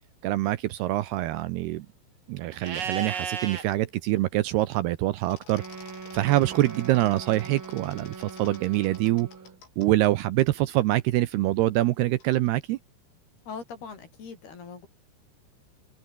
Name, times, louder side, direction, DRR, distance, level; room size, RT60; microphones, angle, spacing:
voice 1, 0.2-1.9 2.3-5.6 6.1-9.3 9.8-12.8, right 16 dB, 80° right, 2.5 m, -25 dB
sound 1, 2.5-3.3 3.6-3.7 5.3-10.1 10.4-10.5 12.2-12.5, left 6 dB, 90° left, 8.4 m, -51 dB
Livestock farm animals working animals, 2.6-3.6 6.5-7.4, right 6 dB, 50° right, 4.9 m, -35 dB
Wind instrument woodwind instrument, 5.5-9.6, right 4 dB, 30° right, 3.5 m, -42 dB
voice 2, 13.5-14.9, left 5 dB, 60° left, 7.0 m, -41 dB
open air
omnidirectional pair, 5.3 m